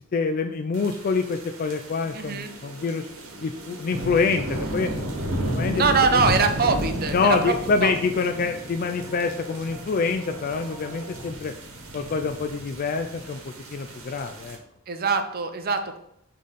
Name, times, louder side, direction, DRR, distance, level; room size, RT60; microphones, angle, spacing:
voice 1, 0.1-3.1 3.4-4.9 5.5-5.8 6.1-6.2 7.1-11.5 11.9-14.6, left 4 dB, 40° left, 6 dB, 0.3 m, -26 dB
sound 1, 0.7-14.6, equal, 60° right, 1.3 m, -33 dB
sound 2, 1.7-11.3, right 1 dB, 85° right, 0.7 m, -45 dB
voice 2, 2.1-2.5 5.7-7.5 7.8-7.9 14.9-16.0, right 4 dB, 45° right, 7 dB, 0.6 m, -23 dB
7.4 x 3.3 x 3.9 m, 0.76 s
head